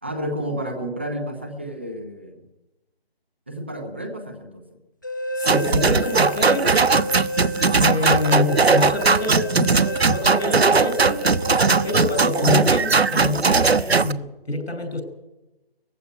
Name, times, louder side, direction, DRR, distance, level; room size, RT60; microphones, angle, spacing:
voice 1, 0.0-2.4 3.5-4.6 7.9-8.8, right 1 dB, 10° right, 4 dB, 0.9 m, -31 dB
sound 1, 5.0-12.6, right 1 dB, 20° left, 0.8 m, -30 dB
voice 2, 5.3-6.7 7.8-11.2 11.8-15.0, left 3 dB, 90° left, 8 dB, 5.9 m, -26 dB
sound 2, 5.4-14.1, right 4 dB, 80° right, 1.1 m, -19 dB
19.5 x 15.0 x 9.5 m, 1.0 s
figure-of-eight pair, 170°, 31 cm